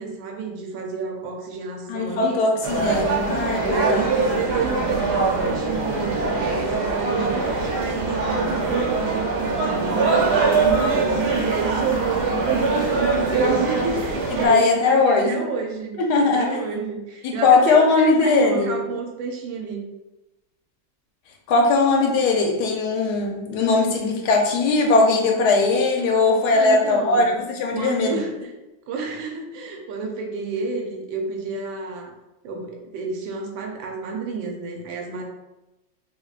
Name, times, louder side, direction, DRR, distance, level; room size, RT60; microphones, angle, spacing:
voice 1, 0.0-2.4 3.6-19.8 26.5-27.3 27.7-28.5 28.9-32.1 32.4-35.2, right 4 dB, 85° right, 1 dB, 1.4 m, -30 dB
voice 2, 1.9-4.1 14.4-15.4 15.9-16.6 17.2-18.8 21.5-28.2, left 3 dB, 70° left, 1 dB, 1.0 m, -19 dB
sound 1, 2.6-14.5, right 3 dB, 65° right, 1.2 m, -22 dB
3.4 x 3.3 x 2.4 m, 1.0 s
omnidirectional pair, 2.1 m